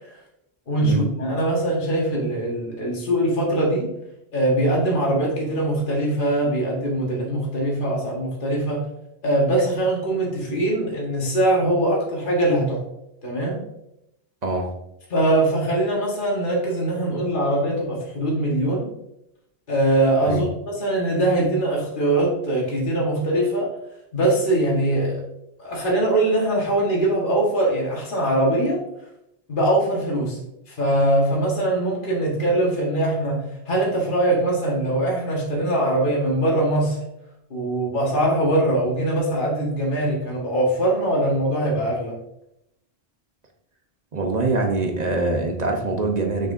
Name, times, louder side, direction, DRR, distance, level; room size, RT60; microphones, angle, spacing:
voice 1, 0.7-3.9 4.3-8.8 9.2-12.8 13.2-13.6 15.1-18.9 19.7-23.7 24.1-25.2 25.6-28.8 29.5-30.4 30.7-37.0 37.5-42.2, right 1 dB, 55° left, -3 dB, 1.6 m, -22 dB
voice 2, 14.4-14.7 20.2-20.4 44.1-46.5, right 2 dB, 45° right, 2 dB, 1.0 m, -24 dB
6.5 x 6.4 x 2.6 m, 0.82 s
omnidirectional pair, 1.1 m